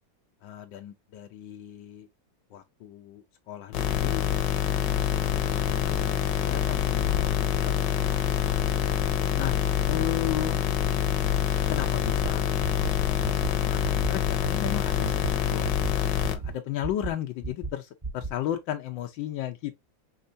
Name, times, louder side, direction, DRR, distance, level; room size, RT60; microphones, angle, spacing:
voice 1, 0.4-2.1 2.5-4.2 4.9-8.2 9.3-9.6 9.9-10.6 11.7-12.4 12.7-15.2 15.5-15.8 16.3-19.7, left 11 dB, 90° left, 1.4 m, -35 dB
sound 1, 3.7-16.4, left 10 dB, 75° left, 1.4 m, -26 dB
sound 2, 4.8-16.6, right 5 dB, 50° right, 0.9 m, -48 dB
sound 3, 12.0-12.3 12.6-12.9 13.2-13.5 13.8-14.1 14.4-14.7 15.0-15.3 15.6-15.9 16.2-16.5 16.8-17.1 17.4-17.7 18.0-18.3, right 4 dB, 25° right, 0.5 m, -33 dB
5.5 x 3.1 x 2.5 m
omnidirectional pair, 2.0 m